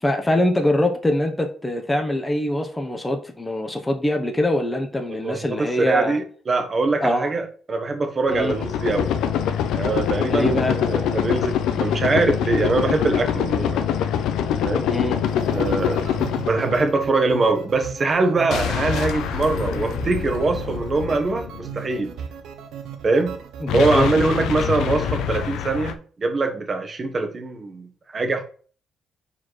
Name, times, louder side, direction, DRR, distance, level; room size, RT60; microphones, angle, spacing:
voice 1, 0.0-6.2 7.0-7.3 8.3-8.6 10.3-10.8 14.9-15.2 23.6-24.1, left 1 dB, 15° left, 0.9 m, -23 dB
voice 2, 5.1-9.1 9.7-13.9 14.6-14.9 15.5-16.0 16.4-22.1 23.0-23.4 23.7-27.9 28.1-28.4, right 3 dB, 40° right, 1.2 m, -23 dB
sound 1, 8.3-17.1 18.5-21.9 23.7-25.9, left 9 dB, 85° left, 0.6 m, -25 dB
sound 2, 15.1-23.8, right 8 dB, 80° right, 0.8 m, -37 dB
4.7 x 4.3 x 4.7 m
cardioid pair, 90°, 0 cm